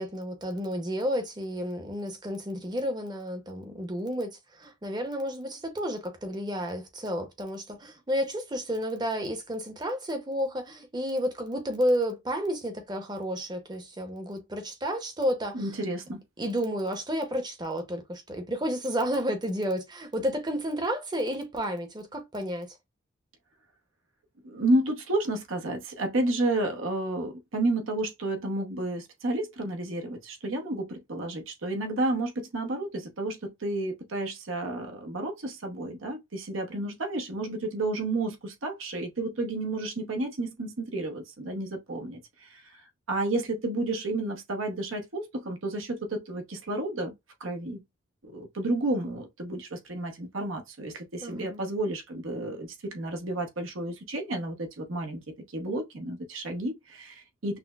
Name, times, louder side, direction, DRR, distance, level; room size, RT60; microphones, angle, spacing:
voice 1, 0.0-15.8 16.4-22.8 51.2-51.6, equal, 20° right, 0.7 m, -31 dB
voice 2, 15.5-16.2 24.4-42.6 43.1-47.1 47.4-47.8 48.2-55.2 55.5-57.6, right 2 dB, 85° right, 0.9 m, -31 dB
5.9 x 2.0 x 2.3 m
head